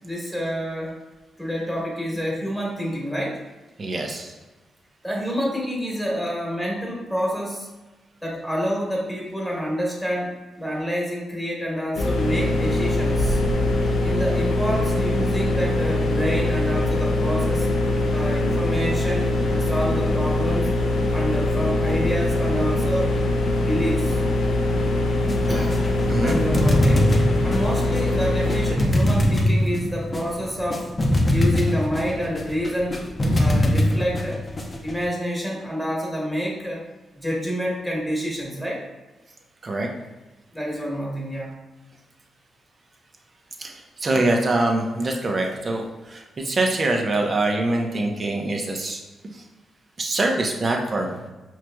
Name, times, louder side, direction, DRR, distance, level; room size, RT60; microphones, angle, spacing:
voice 1, 0.0-1.0 1.4-3.4 5.0-7.7 8.2-13.4 14.0-17.7 18.1-20.7 21.1-23.1 23.5-24.2 25.5-25.8 26.2-27.1 27.4-30.9 31.3-33.1 33.3-34.4 34.8-36.8 37.1-38.8 40.5-41.5, equal, 5° left, -3 dB, 1.4 m, -28 dB
voice 2, 3.8-4.3 26.0-26.4 39.6-39.9 43.6-43.7 44.0-49.0 50.0-51.3, right 2 dB, 45° right, 2 dB, 0.7 m, -24 dB
sound 1, 11.9-28.7, left 2 dB, 80° left, 0.6 m, -22 dB
sound 2, 25.3-35.0, left 1 dB, 35° left, 0.7 m, -22 dB
4.8 x 3.1 x 2.2 m, 1.1 s
cardioid pair, 60°, 0 cm